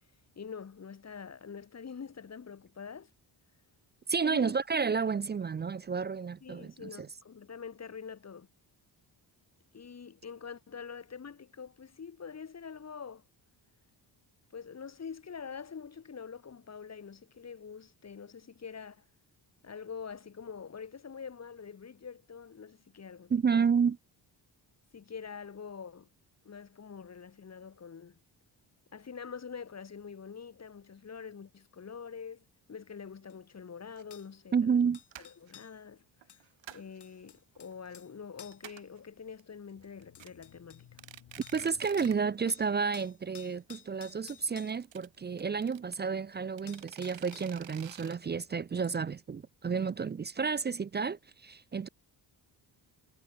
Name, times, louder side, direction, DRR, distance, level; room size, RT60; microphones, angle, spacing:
voice 1, 0.4-3.1 4.2-4.5 6.4-8.5 9.7-13.2 14.5-19.0 19.6-23.7 24.9-26.1 26.4-28.2 28.9-34.8 35.2-36.4 36.7-41.0, left 6 dB, 35° left, 4.0 m, -45 dB
voice 2, 4.1-7.1 23.3-24.0 34.5-35.0 41.5-51.9, right 6 dB, 25° right, 0.3 m, -31 dB
sound 1, 33.3-33.4 34.1-34.3 34.9-35.8 36.3-38.1 38.4-38.7 39.7-39.8 40.1-40.8 41.4-41.7 42.0-42.2 42.5-44.8 46.3-46.4 46.7-47.6 48.8-48.9, left 10 dB, 65° left, 3.3 m, -54 dB
sound 2, 34.0-34.1 34.6-34.8 35.1-35.5 36.2-37.0 37.4-37.9 38.2-38.3 38.5-39.0 39.4-39.5 39.8-40.3 40.8-42.3 42.6-42.7 43.0-43.1 43.3-43.4 44.5-46.0 46.6-48.2, right 11 dB, 85° right, 3.1 m, -49 dB
sound 3, 37.6-42.8, left 11 dB, 85° left, 5.5 m, -61 dB
wide cardioid pair, 165°, 44 cm